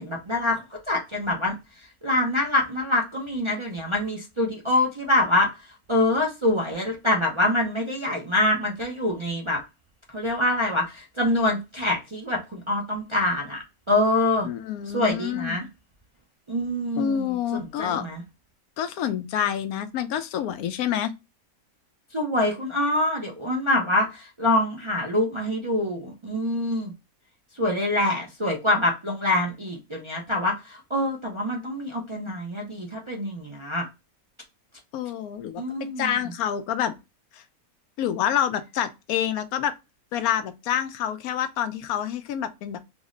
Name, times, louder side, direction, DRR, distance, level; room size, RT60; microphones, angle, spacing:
voice 1, 0.0-1.5 2.0-5.5 5.9-9.6 10.1-14.5 14.9-15.6 16.5-18.2 22.1-26.9 27.6-33.9 35.6-36.2, left 1 dB, 45° right, 0.4 m, -25 dB
voice 2, 14.4-15.6 17.0-18.1 18.8-21.1 34.9-35.6 36.0-36.9 38.0-39.7 40.1-42.8, left 9 dB, 85° left, 1.0 m, -27 dB
3.5 x 2.0 x 3.7 m
omnidirectional pair, 1.5 m